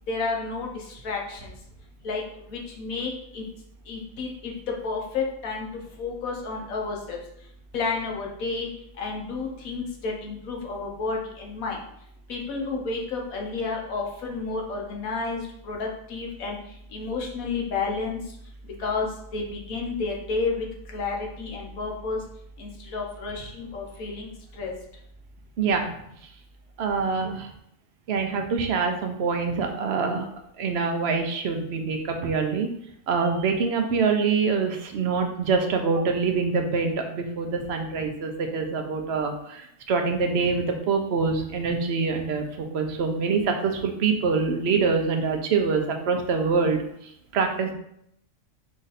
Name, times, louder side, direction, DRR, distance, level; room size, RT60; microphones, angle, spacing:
voice 1, 0.0-1.5 2.0-3.5 3.8-11.8 12.3-22.2 22.6-24.8 27.1-27.5, left 4 dB, 80° left, 0 dB, 1.3 m, -31 dB
voice 2, 26.8-27.5 28.1-30.3 30.6-32.7 33.1-46.8 47.3-47.7, right 5 dB, 60° right, 4 dB, 0.7 m, -25 dB
4.9 x 2.5 x 4.0 m, 0.74 s
omnidirectional pair, 1.5 m